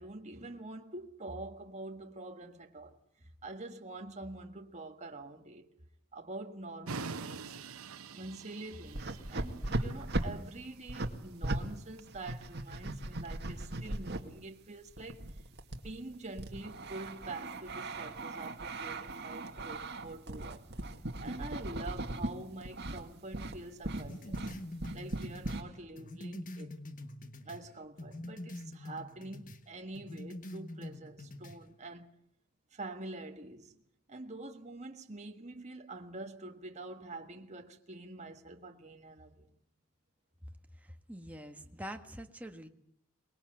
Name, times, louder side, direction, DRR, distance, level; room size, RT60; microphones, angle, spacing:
voice 1, 0.0-5.7 6.1-7.6 8.1-15.4 15.7-20.7 21.2-24.5 24.9-26.7 27.4-32.1 32.7-33.7 34.1-39.5, right 2 dB, 35° right, 1.6 m, -46 dB
sound 1, 6.9-12.0, right 4 dB, 90° right, 1.0 m, -45 dB
sound 2, 8.8-11.6 12.0-14.2 14.9-22.3 22.6-23.0 23.3-23.6 23.8-25.6, right 2 dB, 50° right, 2.1 m, -38 dB
sound 3, 24.0-27.7 28.0-29.6 29.9-31.6, left 1 dB, 40° left, 1.4 m, -45 dB
voice 2, 40.8-42.7, equal, 5° right, 1.6 m, -45 dB
24.5 x 20.5 x 7.9 m
head